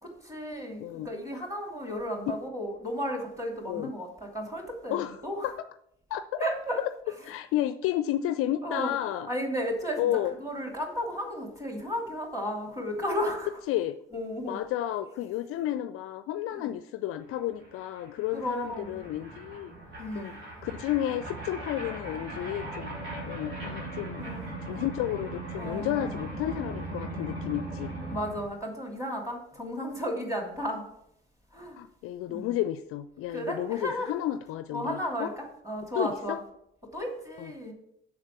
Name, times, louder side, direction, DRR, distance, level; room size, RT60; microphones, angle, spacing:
voice 1, 0.0-5.5 6.4-6.8 8.6-10.1 10.4-13.5 14.1-14.6 16.6-16.7 18.3-18.9 20.0-20.4 24.1-24.5 25.6-26.2 28.1-30.8 31.5-31.8 32.3-32.5 33.3-34.1 34.7-36.4 36.9-37.7, equal, 10° right, 0 dB, 2.9 m, -34 dB
voice 2, 6.1-6.4 6.8-6.9 7.2-9.3 10.0-10.3 13.7-14.0 14.5-19.7 20.1-20.3 20.6-22.9 23.3-24.3 24.6-27.9 31.8-35.3 36.0-36.4 37.4-37.5, left 12 dB, 50° left, 12 dB, 0.4 m, -32 dB
sound 1, 17.3-17.4 17.6-28.5, right 2 dB, 75° right, 3.2 m, -39 dB
7.3 x 6.1 x 6.0 m, 0.75 s
figure-of-eight pair, 50°, 30 cm